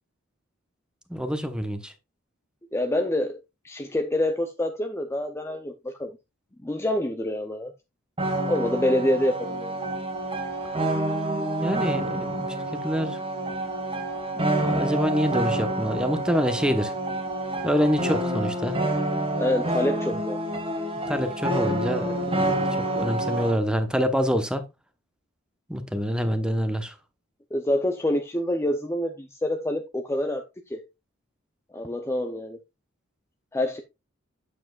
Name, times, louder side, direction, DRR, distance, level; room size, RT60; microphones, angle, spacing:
voice 1, 1.1-1.9 11.6-13.2 14.3-16.9 17.6-18.8 19.1-19.4 21.1-24.6 25.7-26.9, equal, 5° right, 1.0 m, -26 dB
voice 2, 2.7-3.4 3.6-6.1 6.6-7.7 8.5-9.7 19.4-20.4 27.5-30.4 30.7-30.9 31.7-32.6 33.5-33.8, left 1 dB, 15° left, 0.6 m, -26 dB
sound 1, 8.2-23.6, right 1 dB, 25° right, 1.7 m, -28 dB
8.6 x 7.2 x 2.4 m
head